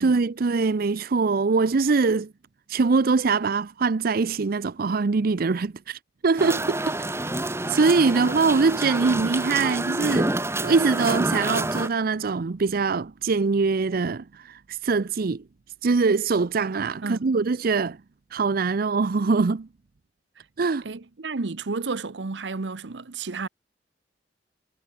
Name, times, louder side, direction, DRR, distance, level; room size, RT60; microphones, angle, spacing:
voice 1, 0.0-2.3 2.7-6.9 7.7-10.3 10.6-15.4 15.8-18.0 18.3-19.7 20.6-20.9, right 4 dB, 55° right, 0.5 m, -23 dB
sound 1, 6.4-11.9, right 2 dB, 15° right, 1.8 m, -28 dB
voice 2, 20.8-23.5, right 3 dB, 75° right, 0.9 m, -32 dB
head